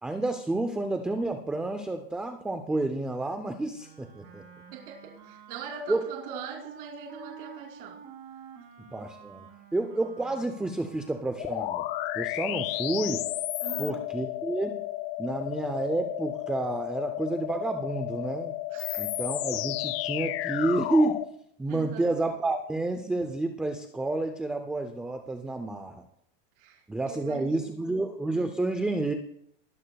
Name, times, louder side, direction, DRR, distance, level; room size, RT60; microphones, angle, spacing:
voice 1, 0.0-4.4 5.9-6.1 8.9-9.5 9.7-11.9 12.1-13.3 13.8-14.8 15.2-18.6 19.0-21.2 21.6-26.0 26.9-29.1, right 2 dB, 5° right, 6 dB, 0.4 m, -30 dB
Wind instrument woodwind instrument, 3.7-11.6, right 7 dB, 45° right, 2.6 m, -49 dB
voice 2, 4.7-8.0 13.6-14.1 18.7-19.0 21.7-22.1 26.6-27.9, right 6 dB, 60° right, 0 dB, 2.6 m, -42 dB
sound 1, 11.4-21.3, left 16 dB, 75° left, 0.7 m, -32 dB
20.5 x 11.5 x 2.3 m, 0.69 s
supercardioid pair, 165°, 29 cm